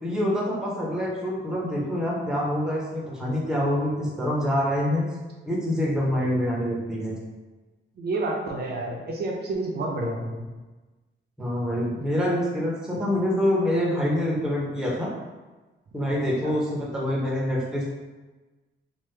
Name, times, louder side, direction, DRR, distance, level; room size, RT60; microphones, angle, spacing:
voice 1, 0.0-5.1 5.5-7.2 11.4-15.1 15.9-17.9, left 1 dB, 5° right, -4 dB, 0.5 m, -26 dB
voice 2, 8.0-10.4 16.4-16.5, right 2 dB, 55° right, -1 dB, 0.4 m, -29 dB
3.1 x 2.0 x 3.1 m, 1.2 s
wide cardioid pair, 165°, 21 cm